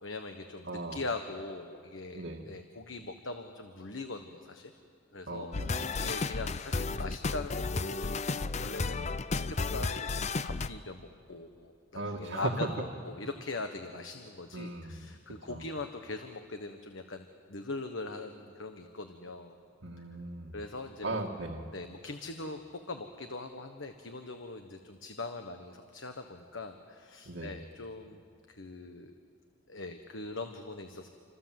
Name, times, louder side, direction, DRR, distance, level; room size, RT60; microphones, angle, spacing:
voice 1, 0.0-4.7 5.1-8.2 8.5-19.6 20.5-21.2 21.7-28.2 28.5-29.1 29.7-31.1, left 3 dB, 75° left, 6 dB, 1.4 m, -41 dB
voice 2, 0.7-1.0 2.1-2.5 5.3-5.9 12.0-12.7 14.5-15.1 15.5-15.6 19.8-20.6 21.0-21.7 27.3-27.6, right 2 dB, 75° right, -1 dB, 1.9 m, -37 dB
sound 1, 5.5-10.7, left 3 dB, 35° left, 0.6 m, -33 dB
28.0 x 27.0 x 7.8 m, 2.4 s
head